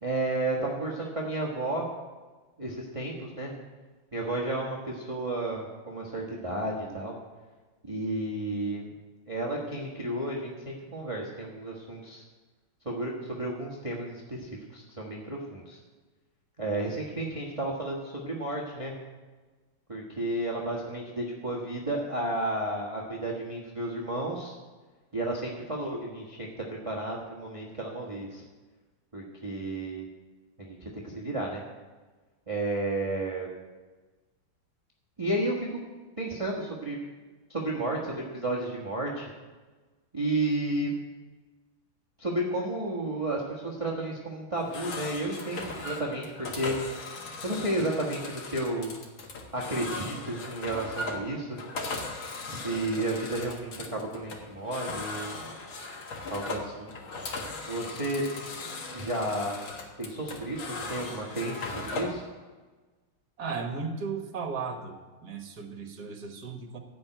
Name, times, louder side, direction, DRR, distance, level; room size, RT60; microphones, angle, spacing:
voice 1, 0.0-1.9 2.6-3.5 4.1-7.1 7.8-8.9 9.3-12.2 12.8-15.8 16.6-18.9 19.9-24.6 25.1-28.5 29.1-30.1 30.6-31.6 32.5-33.5 35.2-35.8 36.2-37.0 37.5-39.3 40.1-40.9 42.2-46.7 47.4-48.9 49.5-51.6 52.4-55.4 56.3-56.9 57.7-58.2 58.9-59.6 60.0-62.2, right 1 dB, 20° right, -3 dB, 1.4 m, -32 dB
sound 1, 44.6-62.2, left 3 dB, 80° left, 2.4 m, -38 dB
voice 2, 63.4-64.9 65.2-66.8, right 5 dB, 55° right, 5 dB, 1.8 m, -35 dB
15.5 x 5.4 x 9.0 m, 1.3 s
omnidirectional pair, 2.2 m